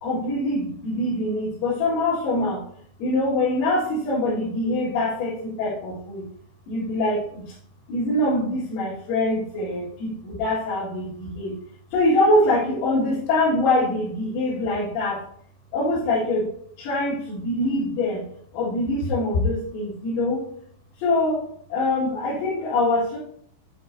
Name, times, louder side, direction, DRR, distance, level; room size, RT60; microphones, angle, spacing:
voice 1, 0.0-2.6 3.0-6.2 6.7-7.5 7.9-11.5 11.9-15.2 15.7-16.5 16.8-18.3 18.5-20.4 21.0-21.4 21.7-23.2, left 2 dB, 85° left, -10 dB, 4.6 m, -24 dB
9.9 x 4.3 x 2.6 m, 0.63 s
omnidirectional pair, 5.9 m